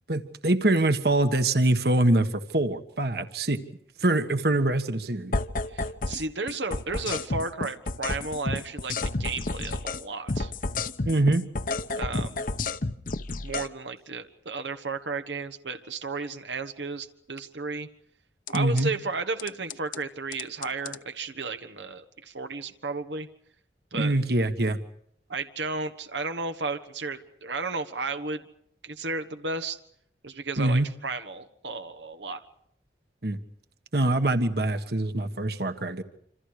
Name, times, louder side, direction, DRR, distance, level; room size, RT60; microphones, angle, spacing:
voice 1, 0.1-3.6 4.0-5.4 11.0-11.4 18.5-18.9 23.9-24.8 30.6-30.9 33.2-33.4 33.9-36.0, right 2 dB, 60° right, 9 dB, 1.6 m, -24 dB
sound 1, 5.3-6.2 6.5-10.0 10.3-13.7 18.5-18.8 19.4-20.0 20.3-21.0, left 3 dB, 50° left, 1.0 m, -30 dB
voice 2, 5.7-10.5 12.0-12.5 13.4-17.9 18.5-23.3 23.9-24.1 25.3-28.4 28.8-29.8 30.2-32.4, right 3 dB, 90° right, 7 dB, 1.5 m, -33 dB
27.0 x 27.0 x 4.9 m, 0.70 s
head